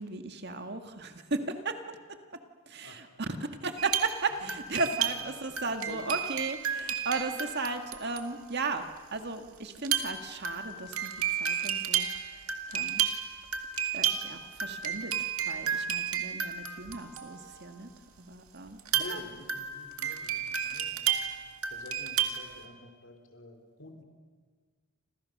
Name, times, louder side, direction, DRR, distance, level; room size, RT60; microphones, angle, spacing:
voice 1, 0.0-2.0 2.7-3.3 3.6-8.9 9.1-11.1 11.4-12.4 12.7-13.0 13.9-15.1 15.4-17.9 18.2-18.8 19.1-19.2, right 3 dB, 50° right, 6 dB, 1.9 m, -35 dB
sound 1, 3.8-8.5 9.7-17.6 18.8-22.6, right 8 dB, 85° right, 2.3 m, -32 dB
voice 2, 5.1-5.5 5.9-6.2 18.9-21.1 21.7-24.0, left 1 dB, 60° left, 4 dB, 4.0 m, -48 dB
29.5 x 27.0 x 6.7 m, 1.5 s
head